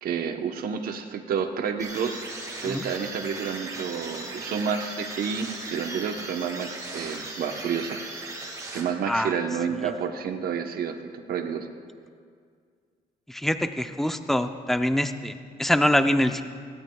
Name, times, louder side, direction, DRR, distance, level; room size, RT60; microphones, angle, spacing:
voice 1, 0.0-2.2 2.6-8.0 8.4-8.5 8.7-11.0 11.3-11.7, right 6 dB, 75° right, 5 dB, 1.0 m, -30 dB
sound 1, 1.8-9.3, right 2 dB, 20° right, 2.0 m, -38 dB
voice 2, 13.3-16.4, left 1 dB, ahead, 8 dB, 0.5 m, -24 dB
18.0 x 17.0 x 2.3 m, 2.1 s
cardioid pair, 130°, 15 cm